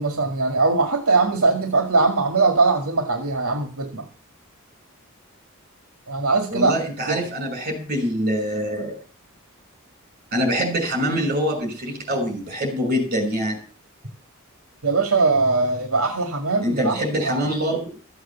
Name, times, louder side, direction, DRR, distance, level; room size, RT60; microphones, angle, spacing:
voice 1, 0.0-4.1 6.1-6.7 7.1-7.2 14.8-17.0 17.2-17.5, right 3 dB, 75° right, 4 dB, 2.1 m, -21 dB
voice 2, 6.5-9.0 10.3-13.6 16.6-18.0, equal, 45° right, 4 dB, 5.9 m, -24 dB
14.5 x 8.0 x 7.1 m, 0.38 s
head